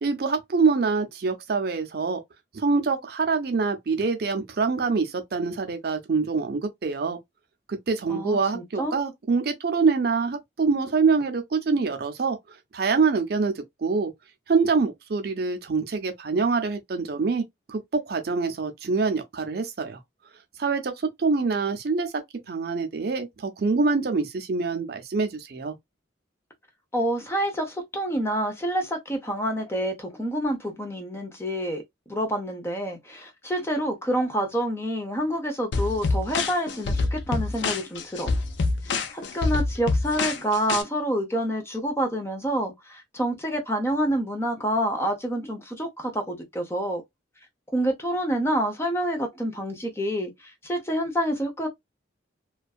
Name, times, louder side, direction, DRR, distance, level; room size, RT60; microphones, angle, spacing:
voice 1, 0.0-2.2 2.5-7.2 7.7-12.4 12.7-14.1 14.5-17.4 17.7-20.0 20.6-22.1 22.5-25.7, right 4 dB, 55° right, 0.5 m, -25 dB
voice 2, 8.1-8.9 26.9-31.8 32.1-38.3 38.8-47.0 47.7-51.7, equal, 15° left, 0.5 m, -28 dB
sound 1, 35.7-40.8, left 3 dB, 70° left, 0.4 m, -26 dB
2.5 x 2.3 x 2.3 m
head